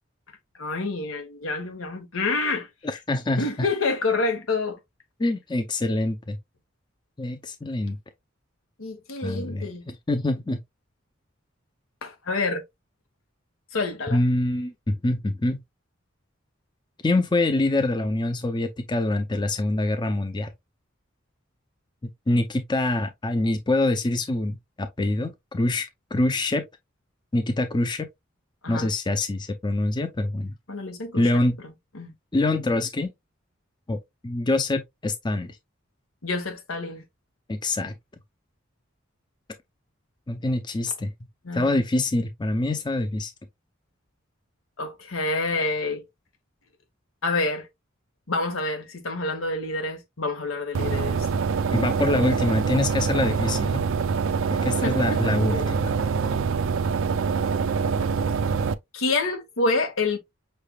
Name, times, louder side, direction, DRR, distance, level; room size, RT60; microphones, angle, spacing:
voice 1, 0.6-2.7 3.4-4.8 8.8-9.8 12.0-12.6 13.7-14.2 28.6-28.9 30.7-31.3 31.9-32.1 36.2-37.0 41.4-41.8 44.8-46.0 47.2-47.7 48.3-51.3 54.8-55.2 55.5-55.7 58.9-60.2, left 3 dB, 85° left, 1.3 m, -27 dB
voice 2, 3.1-3.7 5.2-6.4 7.2-8.0 9.2-10.6 14.1-15.6 17.0-20.5 22.3-25.9 26.1-26.6 27.3-28.1 28.7-30.6 31.1-31.6 32.3-33.1 33.9-35.6 37.5-38.0 40.3-41.1 41.5-43.3 51.7-53.8 54.5-55.9, left 2 dB, 20° left, 0.5 m, -25 dB
sound 1, 50.7-58.7, right 5 dB, 70° right, 0.4 m, -25 dB
5.5 x 3.3 x 2.3 m
head